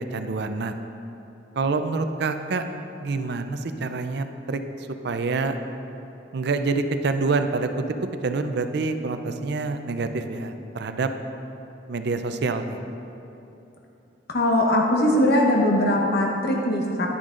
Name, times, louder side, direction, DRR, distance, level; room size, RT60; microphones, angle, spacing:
voice 1, 0.1-0.7 1.6-2.6 3.0-4.6 5.0-5.5 6.3-7.7 8.2-11.1 11.9-12.8, right 3 dB, 60° right, 8 dB, 0.5 m, -26 dB
voice 2, 14.3-17.1, left 1 dB, 60° left, -1 dB, 0.9 m, -21 dB
10.0 x 10.0 x 2.5 m, 2.9 s
head